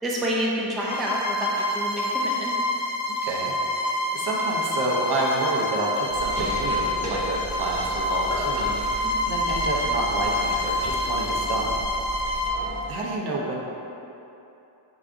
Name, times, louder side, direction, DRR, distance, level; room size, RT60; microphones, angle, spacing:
voice 1, 0.0-2.5 9.0-9.3 12.3-12.4, equal, ahead, -4 dB, 0.3 m, -29 dB
Bowed string instrument, 0.8-12.6, left 1 dB, 70° left, 0.8 m, -27 dB
voice 2, 3.1-3.5 4.1-11.8 12.9-13.6, right 2 dB, 60° right, -3 dB, 0.8 m, -29 dB
sound 1, 6.1-12.9, right 1 dB, 35° right, 1.1 m, -35 dB
4.7 x 3.9 x 2.5 m, 2.9 s
wide cardioid pair, 125°, 45 cm